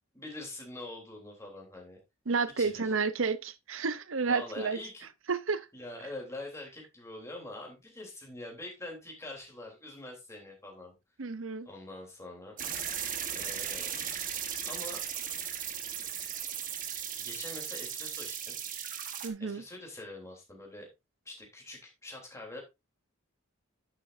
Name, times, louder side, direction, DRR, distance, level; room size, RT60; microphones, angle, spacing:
voice 1, 0.1-2.0 2.6-2.9 4.3-5.1 5.7-10.9 11.6-12.8 13.3-14.0 14.6-15.0 17.2-18.6 19.4-20.9 21.3-22.6, left 2 dB, 15° left, 3.5 m, -44 dB
voice 2, 2.3-4.8 5.3-5.7 11.2-11.7 19.2-19.6, right 4 dB, 75° right, 0.8 m, -31 dB
sound 1, 12.6-19.3, right 8 dB, 40° right, 1.4 m, -37 dB
11.0 x 7.4 x 2.7 m
head